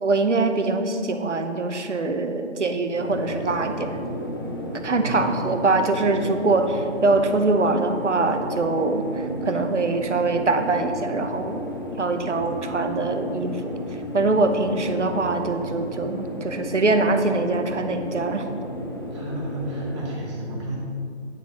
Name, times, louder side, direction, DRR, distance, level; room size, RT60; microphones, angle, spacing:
voice 1, 0.0-3.9 4.8-11.7 12.0-13.8 14.1-18.5, right 3 dB, 80° right, 7 dB, 0.9 m, -23 dB
sound 1, 2.9-20.2, equal, 20° left, 0.4 m, -33 dB
voice 2, 5.0-5.6 19.1-20.8, right 1 dB, 25° right, -4 dB, 1.6 m, -32 dB
9.3 x 4.0 x 6.2 m, 2.5 s
figure-of-eight pair, 145°, 35 cm